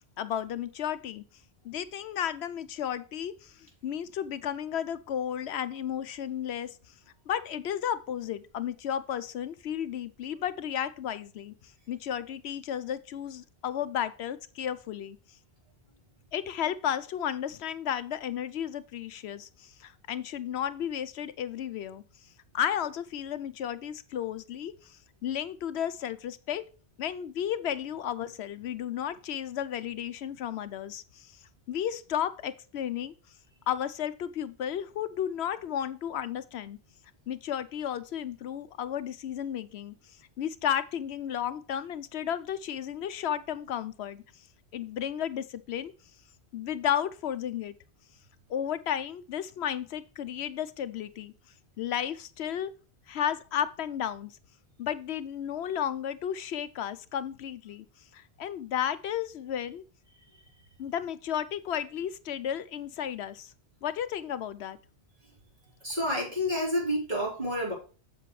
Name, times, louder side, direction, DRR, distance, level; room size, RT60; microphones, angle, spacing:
voice 1, 0.2-1.2 1.6-6.8 7.3-11.5 11.9-15.2 16.3-22.0 22.5-26.6 27.0-31.3 31.7-33.1 33.7-36.8 37.3-39.9 40.4-44.2 44.7-45.9 46.5-47.7 48.5-51.3 51.8-52.7 53.1-54.4 54.8-57.9 58.1-59.8 60.8-63.5 63.8-64.8, left 9 dB, 75° left, 13 dB, 0.9 m, -33 dB
voice 2, 65.8-67.7, equal, 40° right, -4 dB, 4.3 m, -29 dB
7.6 x 7.5 x 3.1 m, 0.36 s
omnidirectional pair, 1.1 m